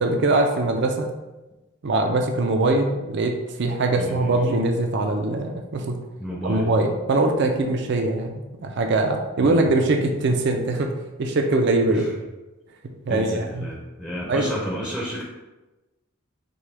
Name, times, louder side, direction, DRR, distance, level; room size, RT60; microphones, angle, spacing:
voice 1, 0.0-1.1 1.8-6.0 6.4-10.9 11.2-12.0 13.1-13.7 14.3-14.5, right 2 dB, 60° right, 3 dB, 0.5 m, -22 dB
voice 2, 4.0-4.3 6.2-6.7 9.4-9.6 11.9-12.1 13.1-15.2, equal, 5° left, -4 dB, 0.6 m, -31 dB
6.0 x 2.2 x 3.3 m, 1.1 s
head